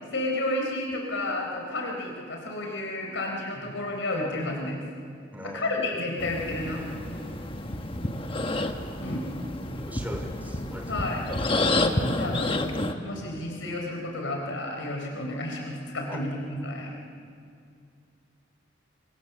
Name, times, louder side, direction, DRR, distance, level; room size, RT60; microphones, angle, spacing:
voice 1, 0.0-4.8 5.4-6.8 9.0-9.3 10.9-12.7 13.0-16.9, left 1 dB, 80° left, 1 dB, 4.1 m, -31 dB
voice 2, 5.3-5.7 9.0-9.3 9.8-11.0 16.1-16.2, equal, 10° right, 4 dB, 3.1 m, -40 dB
sound 1, 6.2-12.9, left 2 dB, 25° left, 1.3 m, -29 dB
27.5 x 24.0 x 7.1 m, 2.3 s
head